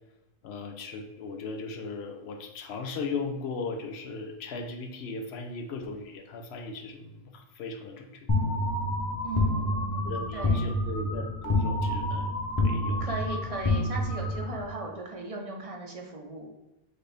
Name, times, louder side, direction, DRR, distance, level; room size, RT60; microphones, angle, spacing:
voice 1, 0.4-8.3 9.5-9.6 10.1-13.1, left 4 dB, 90° left, 3 dB, 0.9 m, -37 dB
sound 1, 8.3-14.7, left 1 dB, 25° left, 0.7 m, -28 dB
voice 2, 9.2-10.6 13.0-16.5, right 2 dB, 40° right, 1 dB, 0.6 m, -37 dB
6.2 x 2.6 x 3.3 m, 0.91 s
omnidirectional pair, 1.0 m